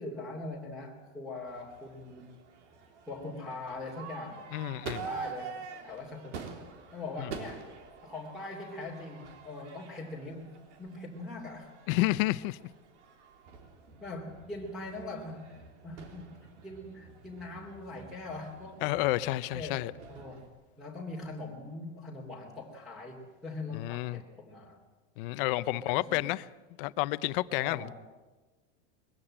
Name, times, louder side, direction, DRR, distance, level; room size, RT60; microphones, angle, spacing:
voice 1, 0.0-2.3 3.1-4.5 5.0-6.4 6.9-7.7 8.0-11.7 14.0-15.5 15.8-18.8 19.5-20.4 20.8-24.8 25.7-26.4 27.6-27.9, left 2 dB, ahead, 2.7 m, -42 dB
Crowd / Fireworks, 1.5-20.5, right 5 dB, 80° right, 3.8 m, -47 dB
voice 2, 4.5-5.1 7.2-7.3 11.9-12.6 18.8-19.9 23.7-24.2 25.2-26.4 26.8-27.9, left 18 dB, 50° left, 0.8 m, -30 dB
22.0 x 15.5 x 8.8 m
supercardioid pair, 155°, 34 cm